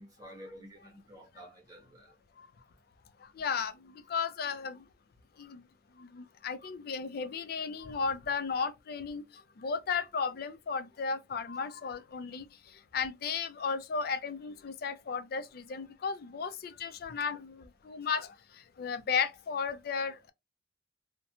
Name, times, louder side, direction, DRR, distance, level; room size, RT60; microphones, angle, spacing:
voice 1, 0.0-2.2, equal, 20° right, 0.7 m, -51 dB
voice 2, 3.4-4.8 5.4-5.6 6.0-9.2 9.6-12.5 12.9-18.3 18.8-20.3, left 5 dB, 55° left, 0.4 m, -34 dB
2.6 x 2.1 x 2.8 m
head